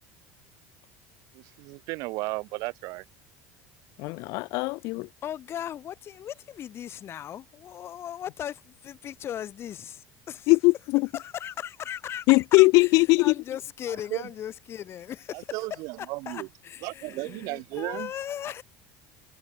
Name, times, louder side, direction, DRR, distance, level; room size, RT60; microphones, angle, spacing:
voice 1, 1.3-3.0 14.1-14.2 15.3-16.5 16.8-18.1, right 23 dB, 65° right, 1.2 m, -34 dB
voice 2, 4.0-5.1 10.5-11.0 12.3-13.3, left 24 dB, 65° left, 1.0 m, -20 dB
voice 3, 5.2-10.6 11.1-18.6, left 10 dB, 40° left, 3.3 m, -38 dB
supercardioid pair, 115°, 6 cm